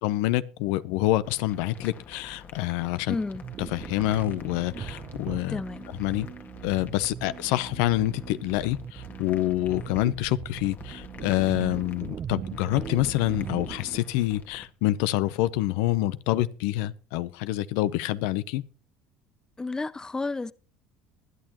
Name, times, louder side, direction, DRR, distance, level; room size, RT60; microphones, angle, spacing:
voice 1, 0.0-3.2 3.6-5.6 6.0-6.3 6.6-18.6, left 16 dB, 80° left, 0.7 m, -27 dB
sound 1, 1.2-14.7, left 5 dB, 40° left, 1.6 m, -48 dB
voice 2, 3.1-3.4 5.5-5.9 19.6-20.5, left 3 dB, 15° left, 0.5 m, -31 dB
sound 2, 3.3-14.0, right 8 dB, 40° right, 0.6 m, -39 dB
20.5 x 10.5 x 3.0 m
supercardioid pair, 90°, 5 cm